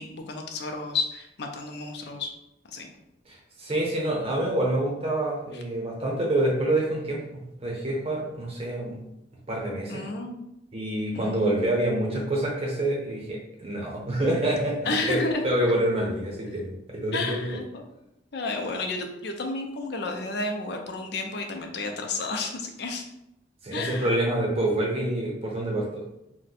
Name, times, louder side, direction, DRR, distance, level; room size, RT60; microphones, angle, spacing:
voice 1, 0.0-2.3 2.7-2.9 9.9-10.4 11.1-11.4 14.9-15.4 17.1-17.8 18.3-23.1 23.7-24.2, left 3 dB, 65° left, 4 dB, 0.5 m, -31 dB
voice 2, 3.3-9.0 9.5-10.1 10.7-17.4 23.6-26.0, right 1 dB, 35° right, -2 dB, 0.8 m, -27 dB
2.5 x 2.1 x 4.0 m, 0.85 s
head